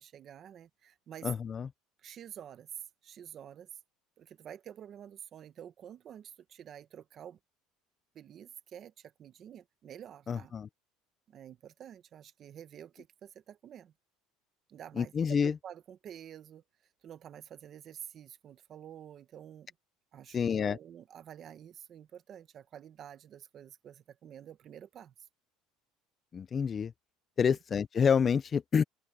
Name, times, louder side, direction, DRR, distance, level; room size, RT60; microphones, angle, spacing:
voice 1, 0.0-1.3 2.0-3.7 4.2-7.4 8.1-10.5 11.3-13.9 14.7-15.1 15.4-16.6 17.0-19.7 20.1-25.1 27.4-27.6, right 9 dB, 35° right, 1.2 m, -49 dB
voice 2, 1.2-1.7 10.3-10.7 15.0-15.5 20.3-20.8 26.3-26.9 27.4-28.8, left 6 dB, 25° left, 0.4 m, -28 dB
open air
cardioid pair, 155°, 0 cm